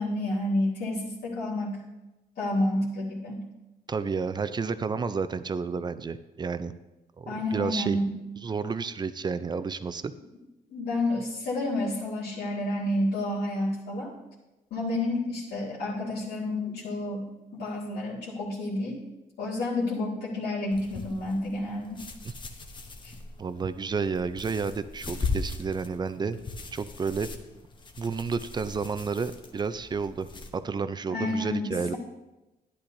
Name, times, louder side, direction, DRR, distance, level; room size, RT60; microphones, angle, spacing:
voice 1, 0.0-1.8 2.4-3.5 7.3-8.0 10.7-14.1 14.7-19.0 19.4-22.0 23.0-23.1 31.1-32.0, left 1 dB, 75° left, -7 dB, 2.1 m, -30 dB
voice 2, 3.9-6.7 7.2-8.0 8.4-10.1 22.2-22.3 23.4-26.4 26.7-27.3 28.0-30.3 30.5-31.9, right 5 dB, 25° right, 13 dB, 0.4 m, -31 dB
sound 1, 20.7-30.5, left 4 dB, 30° left, 0.9 m, -39 dB
11.5 x 10.0 x 2.6 m, 1.0 s
cardioid pair, 110°, 17 cm